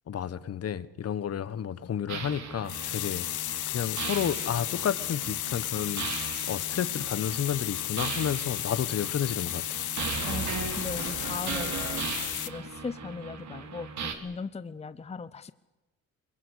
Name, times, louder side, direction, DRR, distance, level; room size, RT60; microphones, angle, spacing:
voice 1, 0.1-3.2 3.7-6.1 6.5-9.6, left 9 dB, 55° left, 17 dB, 1.3 m, -31 dB
sound 1, 2.1-14.1, right 6 dB, 65° right, 3.1 m, -37 dB
sound 2, 2.7-12.5, left 15 dB, 80° left, 1.0 m, -34 dB
voice 2, 10.2-12.1 12.5-15.5, left 5 dB, 20° left, 14 dB, 0.8 m, -38 dB
23.0 x 22.5 x 8.3 m, 1.0 s
cardioid pair, 90°, 30 cm